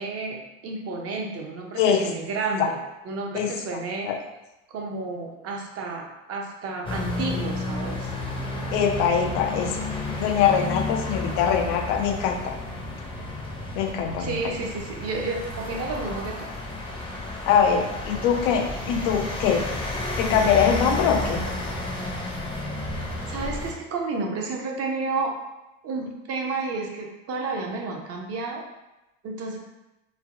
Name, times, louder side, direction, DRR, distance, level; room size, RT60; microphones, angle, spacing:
voice 1, 0.0-2.8 3.0-4.2 4.7-8.1 14.2-16.4 23.3-25.3 25.8-28.6 29.2-29.6, right 3 dB, 40° right, 0 dB, 0.6 m, -31 dB
sound 1, 6.8-23.7, left 2 dB, 15° left, 0.6 m, -31 dB
voice 2, 8.7-9.7 10.2-12.6 13.7-14.5 17.5-19.7 20.2-21.4, left 7 dB, 70° left, 4 dB, 0.5 m, -23 dB
3.2 x 2.2 x 2.5 m, 0.98 s
hypercardioid pair, 90°, 39 cm